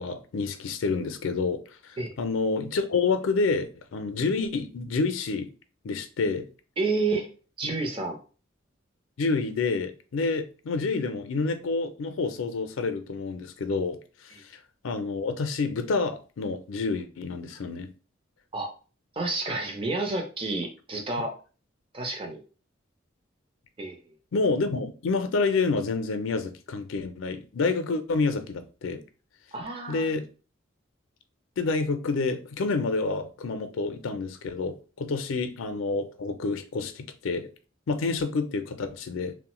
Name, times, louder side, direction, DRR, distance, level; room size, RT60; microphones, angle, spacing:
voice 1, 0.0-5.5 5.8-6.5 9.2-14.0 14.4-14.5 14.8-17.9 24.3-29.0 29.9-30.3 31.6-37.5 37.9-39.3, left 4 dB, 80° left, 0.4 m, -28 dB
voice 2, 6.8-7.3 7.6-8.2 18.5-18.7 19.2-21.3 21.9-22.4 23.8-24.0 29.5-30.1, right 3 dB, 25° right, 0.6 m, -30 dB
3.0 x 2.1 x 3.0 m
head